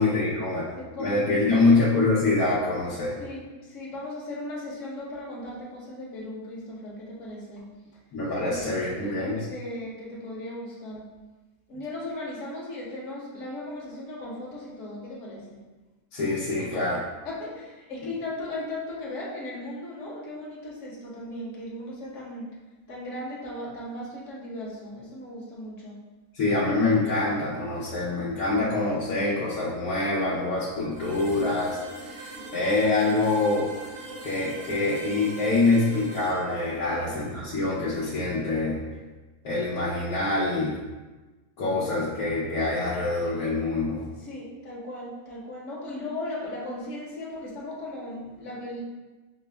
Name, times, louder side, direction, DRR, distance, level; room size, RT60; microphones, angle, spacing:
voice 1, 0.0-0.7 1.0-3.2 8.1-9.4 16.1-17.0 26.3-33.7 34.2-38.8 39.4-40.8 41.6-44.0, left 2 dB, 80° left, -9 dB, 1.3 m, -25 dB
voice 2, 0.8-1.9 3.2-7.6 8.4-11.0 11.7-15.6 16.6-16.7 17.2-22.5 22.9-25.9 36.9-37.1 44.2-48.8, left 1 dB, 60° left, -4 dB, 1.2 m, -37 dB
sound 1, 30.9-38.7, right 2 dB, 60° right, 1.3 m, -42 dB
5.8 x 2.0 x 3.3 m, 1.2 s
omnidirectional pair, 1.5 m